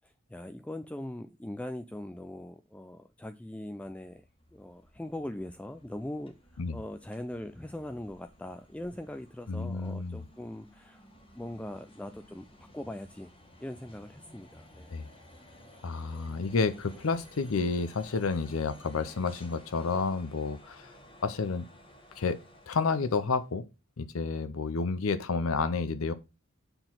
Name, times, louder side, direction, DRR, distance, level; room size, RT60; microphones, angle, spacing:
voice 1, 0.0-4.2 4.5-11.0 11.3-12.5 12.7-13.3 13.6-14.9, left 1 dB, 5° left, 0.3 m, -41 dB
sound 1, 3.8-23.5, equal, 25° left, 1.5 m, -55 dB
voice 2, 9.5-10.2 14.9-15.0 15.8-20.9 21.2-21.7 22.2-22.4 22.7-23.6 24.0-26.1, left 4 dB, 85° left, 0.6 m, -30 dB
6.9 x 3.9 x 5.9 m
head